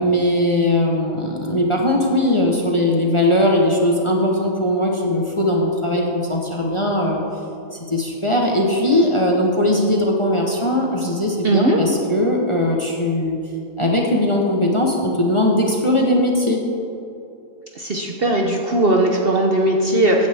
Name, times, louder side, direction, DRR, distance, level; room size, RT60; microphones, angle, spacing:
voice 1, 0.0-7.2 7.7-13.4 13.8-16.6, left 1 dB, 25° left, 0 dB, 0.9 m, -19 dB
voice 2, 11.4-11.8 17.7-20.3, right 1 dB, 45° right, 1 dB, 0.9 m, -18 dB
15.5 x 9.5 x 3.5 m, 2.7 s
omnidirectional pair, 1.6 m